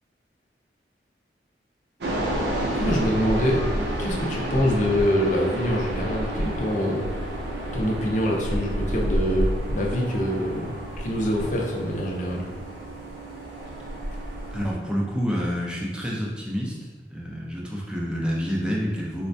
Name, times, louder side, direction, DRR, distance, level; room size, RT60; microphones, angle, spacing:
sound 1, 2.0-14.7, equal, 75° right, 0.5 m, -30 dB
voice 1, 2.7-3.6 4.0-12.5, equal, 45° left, -1 dB, 0.5 m, -25 dB
voice 2, 14.5-16.8 17.1-19.3, equal, 5° right, -3 dB, 0.5 m, -28 dB
4.2 x 2.1 x 2.6 m, 1.4 s
head